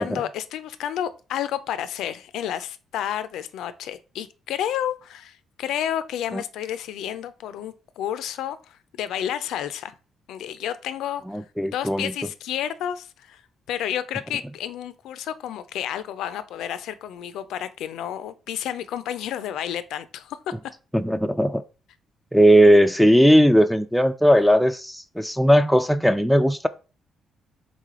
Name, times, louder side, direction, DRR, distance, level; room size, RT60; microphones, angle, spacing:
voice 1, 0.0-9.9 10.3-11.2 11.6-13.4 13.7-20.4, left 10 dB, 85° left, 0.4 m, -31 dB
voice 2, 11.3-12.1 20.9-21.6 22.3-26.7, equal, ahead, 0.3 m, -18 dB
3.7 x 3.3 x 3.6 m
cardioid pair, 90°, 0 cm